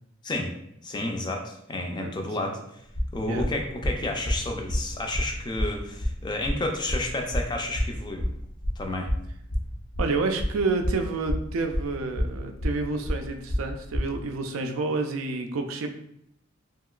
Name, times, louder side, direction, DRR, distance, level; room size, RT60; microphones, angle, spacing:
voice 1, 0.8-2.8 3.1-8.3 8.8-9.1, left 2 dB, 20° left, 3 dB, 0.3 m, -31 dB
voice 2, 2.0-2.5 3.3-3.5 10.0-15.9, right 3 dB, 85° right, 5 dB, 0.4 m, -29 dB
sound 1, 2.9-14.0, equal, 75° left, 0.8 m, -28 dB
2.9 x 2.8 x 2.3 m, 0.75 s
head